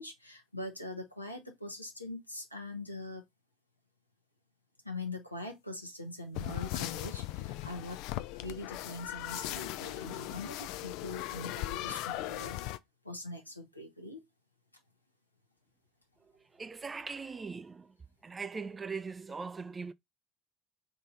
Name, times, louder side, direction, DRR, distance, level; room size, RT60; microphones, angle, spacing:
voice 1, 0.0-3.2 4.8-8.0 8.3-12.6 13.0-14.2, left 2 dB, 90° left, 0.9 m, -42 dB
sound 1, 6.3-12.8, left 15 dB, 60° left, 0.3 m, -38 dB
voice 2, 16.2-18.0 18.2-19.9, right 4 dB, 20° right, 0.4 m, -41 dB
3.7 x 3.1 x 3.9 m
figure-of-eight pair, 60°, 0 cm